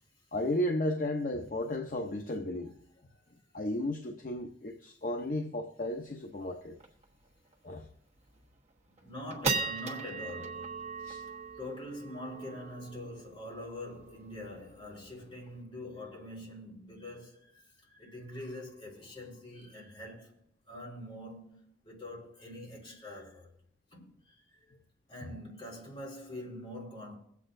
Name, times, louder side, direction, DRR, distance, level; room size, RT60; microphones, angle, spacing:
voice 1, 0.3-2.7 3.5-6.7 7.6-7.9 11.0-11.3 25.2-25.3, left 1 dB, 50° left, 0.7 m, -34 dB
sound 1, 5.9-6.0 6.3-6.4 6.8-7.0 7.5-7.6 8.2-8.5 9.0-15.6, right 4 dB, 40° right, 1.2 m, -39 dB
voice 2, 9.0-10.9 11.6-20.4 20.7-21.6 21.8-23.5 23.9-24.4 25.1-27.1, left 1 dB, 30° left, 4.0 m, -44 dB
22.5 x 8.4 x 2.6 m
head